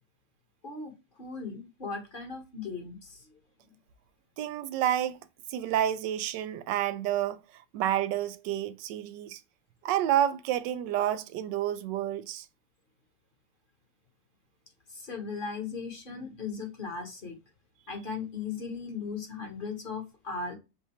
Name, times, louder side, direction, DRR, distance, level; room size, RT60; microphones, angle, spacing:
voice 1, 1.2-3.2 14.9-17.4 17.9-20.6, left 5 dB, 35° left, 1.3 m, -37 dB
voice 2, 4.4-5.2 5.5-7.4 7.7-9.4 9.8-12.5, right 11 dB, 90° right, 1.2 m, -29 dB
6.1 x 2.7 x 3.0 m
omnidirectional pair, 1.8 m